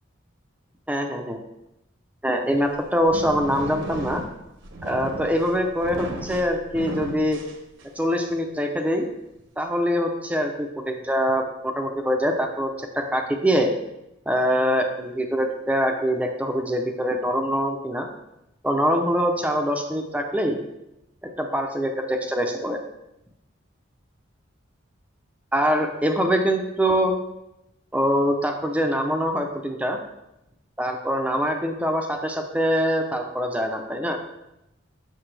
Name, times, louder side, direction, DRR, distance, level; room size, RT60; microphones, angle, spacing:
voice 1, 0.9-1.4 2.2-4.2 4.8-7.4 8.0-9.0 9.6-13.7 14.3-18.1 18.6-20.6 21.4-22.8 25.5-27.1 27.9-30.0 30.8-34.2, equal, 5° right, 3 dB, 0.6 m, -24 dB
sound 1, 2.5-8.2, right 1 dB, 70° right, 1.0 m, -35 dB
7.9 x 6.5 x 3.3 m, 0.89 s
head